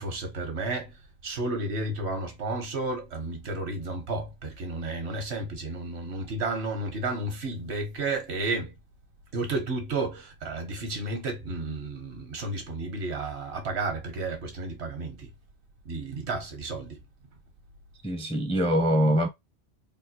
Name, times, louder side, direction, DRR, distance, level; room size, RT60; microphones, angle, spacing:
voice 1, 0.0-8.7 9.3-15.3 15.8-17.0, right 2 dB, 80° right, 1.3 m, -32 dB
voice 2, 18.0-19.3, equal, 10° left, 0.5 m, -23 dB
3.7 x 2.3 x 2.8 m
omnidirectional pair, 1.1 m